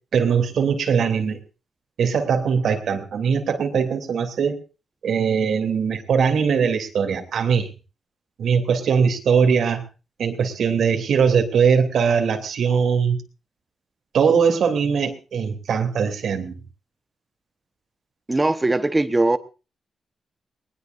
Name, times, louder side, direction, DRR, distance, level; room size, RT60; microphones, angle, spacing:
voice 1, 0.1-1.4 2.0-4.6 5.0-7.7 8.4-9.8 10.2-13.2 14.1-16.5, right 6 dB, 80° right, 4 dB, 3.0 m, -21 dB
voice 2, 18.3-19.4, right 2 dB, 20° right, 11 dB, 1.1 m, -20 dB
20.5 x 20.0 x 2.6 m, 0.33 s
cardioid pair, 90°, 0 cm